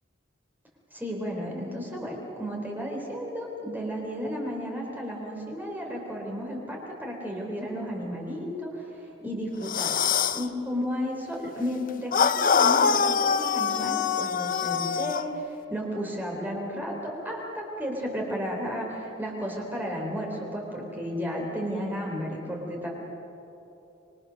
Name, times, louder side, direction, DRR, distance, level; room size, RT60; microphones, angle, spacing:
voice 1, 0.9-8.9 9.2-10.0 10.3-22.9, equal, 10° right, -2 dB, 3.6 m, -33 dB
sound 1, 9.6-10.5 12.1-15.3, left 6 dB, 45° left, 0.6 m, -24 dB
25.5 x 22.5 x 6.5 m, 3.0 s
head